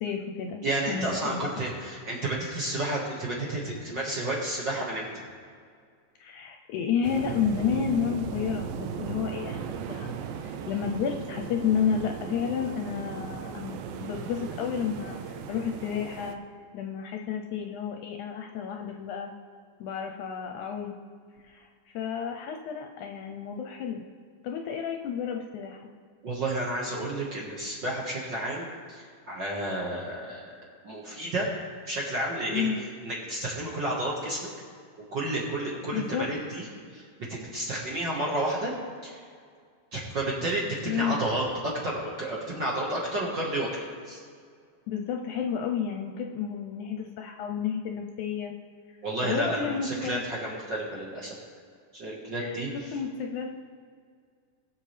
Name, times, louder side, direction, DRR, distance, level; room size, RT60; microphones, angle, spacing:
voice 1, 0.0-0.6 0.9-1.6 6.2-10.1 10.4-16.4 16.7-19.3 19.8-20.9 21.4-21.7 21.9-24.0 24.4-25.9 32.5-32.8 35.9-36.3 40.9-41.2 44.9-48.5 49.2-50.2 52.4-52.6 52.9-53.5, left 7 dB, 75° left, 3 dB, 1.9 m, -31 dB
voice 2, 0.6-5.1 26.2-30.6 30.8-31.5 31.8-32.7 33.0-34.4 35.1-36.7 36.9-38.7 39.0-39.2 39.9-43.7 44.0-44.2 49.0-51.3 51.9-52.7, right 1 dB, 45° right, -4 dB, 1.6 m, -31 dB
sound 1, 7.0-16.4, right 7 dB, 90° right, 2.5 m, -37 dB
21.0 x 7.2 x 3.3 m, 2.1 s
omnidirectional pair, 3.9 m